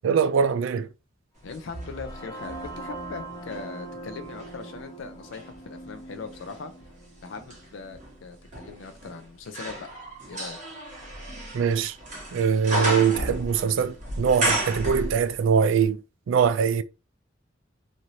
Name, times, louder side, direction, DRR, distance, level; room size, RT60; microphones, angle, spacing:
voice 1, 0.0-0.9 11.5-12.0 12.3-16.0 16.3-16.8, right 6 dB, 75° right, 0.3 m, -22 dB
voice 2, 1.4-6.7 7.2-9.9 10.3-10.6, left 4 dB, 70° left, 0.4 m, -40 dB
sound 1, 1.5-9.4, right 2 dB, 20° left, 0.6 m, -42 dB
sound 2, 1.5-3.7 4.2-15.6 15.8-15.9, right 1 dB, 40° right, 1.1 m, -33 dB
3.1 x 2.5 x 2.6 m
head